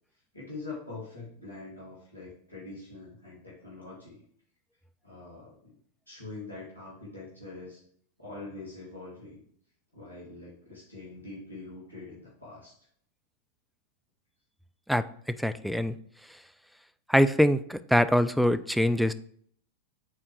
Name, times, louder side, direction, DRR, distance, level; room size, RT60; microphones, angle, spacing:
voice 1, 0.3-4.2 5.0-5.8 6.1-7.8 8.2-9.4 9.9-12.7, left 3 dB, 85° left, -7 dB, 2.2 m, -44 dB
voice 2, 14.9-16.0 17.1-19.1, equal, ahead, 13 dB, 0.4 m, -24 dB
9.0 x 4.2 x 3.3 m, 0.63 s
figure-of-eight pair, 90°, 0 cm